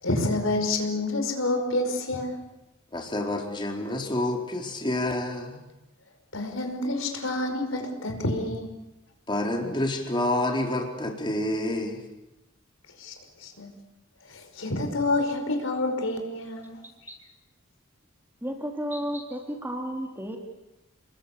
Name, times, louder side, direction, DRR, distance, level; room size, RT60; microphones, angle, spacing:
voice 1, 0.0-2.4 6.3-8.7 13.0-13.1 13.4-13.7 14.3-16.8, left 2 dB, 75° left, 5 dB, 5.3 m, -28 dB
voice 2, 2.9-5.6 9.3-12.0, left 1 dB, 25° left, 1 dB, 4.1 m, -28 dB
voice 3, 18.4-20.4, equal, 10° right, 2 dB, 3.2 m, -32 dB
30.0 x 22.0 x 8.5 m, 0.96 s
head